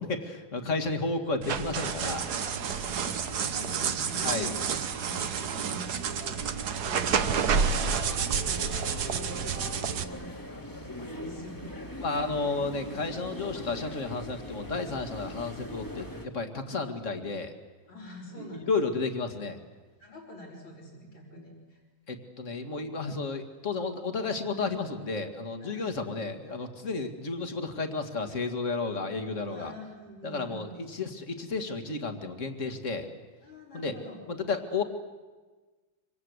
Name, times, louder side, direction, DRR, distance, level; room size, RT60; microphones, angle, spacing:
voice 1, 0.0-2.3 4.2-4.5 12.0-17.5 18.4-19.6 22.1-29.7 30.2-33.1 33.7-34.0 34.3-34.8, left 3 dB, 35° left, 7 dB, 2.2 m, -32 dB
sound 1, 1.4-10.0, right 6 dB, 55° right, 1.5 m, -29 dB
sound 2, 2.2-16.3, left 1 dB, 10° left, 2.1 m, -42 dB
voice 2, 2.4-4.7 5.0-12.0 17.9-18.7 20.0-21.8 25.6-25.9 29.5-30.6 33.4-34.2, equal, 75° left, -6 dB, 5.6 m, -45 dB
26.5 x 25.0 x 8.1 m, 1.3 s
omnidirectional pair, 2.3 m